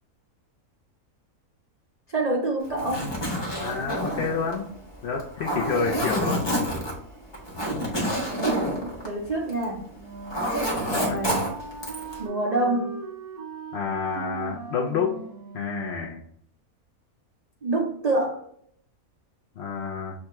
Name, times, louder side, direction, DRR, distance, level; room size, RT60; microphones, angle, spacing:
voice 1, 2.1-3.1 7.7-9.8 10.9-11.5 12.2-13.0 17.6-18.4, right 2 dB, 65° right, -2 dB, 0.4 m, -27 dB
Zipper (clothing), 2.6-9.8 10.0-12.2, equal, 25° left, 0.7 m, -28 dB
voice 2, 3.6-4.7 5.0-6.5 10.8-11.2 13.7-15.2 15.5-16.2 19.6-20.1, left 5 dB, 60° left, -2 dB, 0.7 m, -29 dB
Wind instrument woodwind instrument, 9.9-15.9, right 4 dB, 85° right, 1.5 m, -38 dB
6.4 x 2.2 x 2.9 m, 0.65 s
omnidirectional pair, 1.6 m